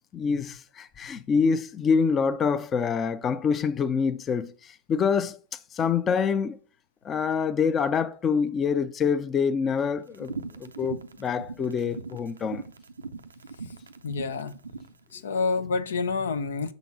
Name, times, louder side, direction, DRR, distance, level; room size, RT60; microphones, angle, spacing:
voice 1, 0.1-6.6 7.0-10.3 10.6-12.6, left 6 dB, 25° left, 0.5 m, -26 dB
sound 1, 10.1-14.9, right 4 dB, 85° right, 0.5 m, -39 dB
voice 2, 14.0-14.5 15.1-16.7, left 4 dB, 75° left, 0.6 m, -28 dB
5.9 x 4.0 x 5.9 m
hypercardioid pair, 100°, 0 cm